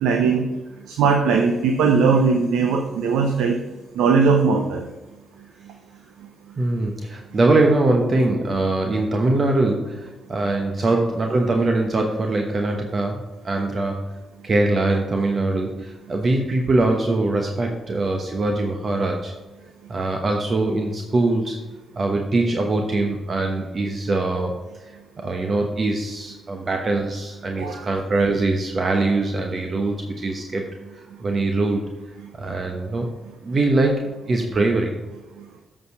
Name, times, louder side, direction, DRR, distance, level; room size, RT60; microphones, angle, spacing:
voice 1, 0.0-0.5 0.9-3.6 4.0-4.8 27.6-27.9, right 5 dB, 80° right, 4 dB, 0.7 m, -19 dB
voice 2, 6.6-14.1 14.4-19.3 19.9-21.6 22.0-30.7 30.9-31.9 32.3-33.2 33.4-35.0, right 2 dB, 50° right, 3 dB, 1.0 m, -22 dB
8.0 x 4.9 x 5.7 m, 1.1 s
hypercardioid pair, 45°, 0 cm